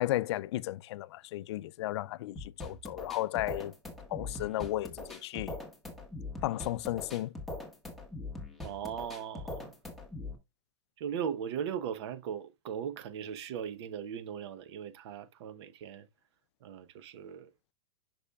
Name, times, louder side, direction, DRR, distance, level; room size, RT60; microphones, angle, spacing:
voice 1, 0.0-3.7 4.1-5.6 6.4-7.3, left 15 dB, 65° left, 0.4 m, -34 dB
sound 1, 2.4-10.4, left 2 dB, ahead, 1.3 m, -42 dB
voice 2, 8.6-9.7 11.0-16.1 16.6-17.5, right 8 dB, 65° right, 0.8 m, -38 dB
8.3 x 6.0 x 2.3 m
supercardioid pair, 150°, 15 cm